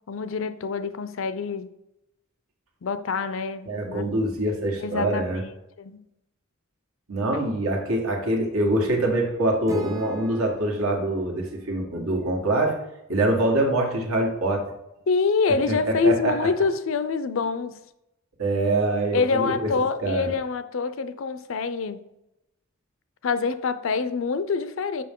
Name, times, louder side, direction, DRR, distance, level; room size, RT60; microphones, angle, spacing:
voice 1, 0.1-1.7 2.8-4.0 4.8-5.5 5.8-6.0 15.1-17.8 19.1-22.0 23.2-25.0, left 4 dB, 65° left, 0.5 m, -26 dB
voice 2, 3.7-5.4 7.1-12.8 13.1-14.6 15.7-16.3 18.4-19.5 20.0-20.3, right 1 dB, 80° right, 1.7 m, -24 dB
Acoustic guitar / Strum, 9.7-12.8, right 2 dB, 15° right, 0.5 m, -42 dB
6.7 x 5.5 x 3.7 m
head